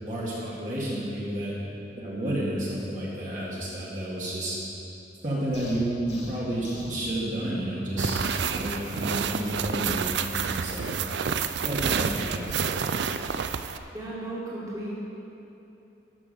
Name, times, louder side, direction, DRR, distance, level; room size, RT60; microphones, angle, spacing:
voice 1, 0.0-1.5 2.0-4.6 5.2-8.2 8.5-10.3 10.6-10.9 11.6-12.6, right 1 dB, 45° right, -7 dB, 2.2 m, -31 dB
sound 1, 5.5-7.0, left 1 dB, 80° left, 2.2 m, -42 dB
sound 2, 8.0-13.8, right 6 dB, 75° right, 0.4 m, -29 dB
voice 2, 13.9-14.9, right 1 dB, 20° right, -8 dB, 2.2 m, -35 dB
13.0 x 6.2 x 6.5 m, 2.8 s
head